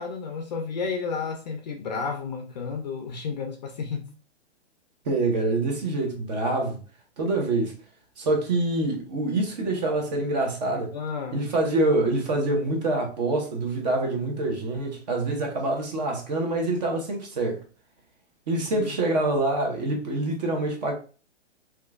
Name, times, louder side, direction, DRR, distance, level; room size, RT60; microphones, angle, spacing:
voice 1, 0.0-4.1 10.9-11.4 18.7-18.9, left 5 dB, 40° left, 0.4 m, -32 dB
voice 2, 5.1-6.8 7.2-7.7 8.2-10.9 11.3-17.6 18.5-20.9, right 2 dB, 35° right, 0.7 m, -26 dB
2.9 x 2.3 x 2.4 m
hypercardioid pair, 155°, 36 cm